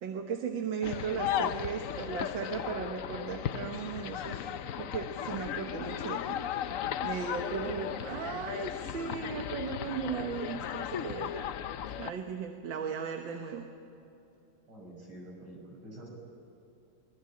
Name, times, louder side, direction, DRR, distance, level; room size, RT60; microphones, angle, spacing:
voice 1, 0.0-4.5 4.8-6.7 7.0-11.5 12.0-13.7, right 6 dB, 75° right, 4 dB, 2.0 m, -37 dB
sound 1, 0.8-12.1, left 9 dB, 65° left, 0.8 m, -36 dB
voice 2, 14.7-16.1, right 1 dB, 60° right, -1 dB, 6.5 m, -47 dB
23.5 x 21.0 x 8.6 m, 2.8 s
omnidirectional pair, 2.1 m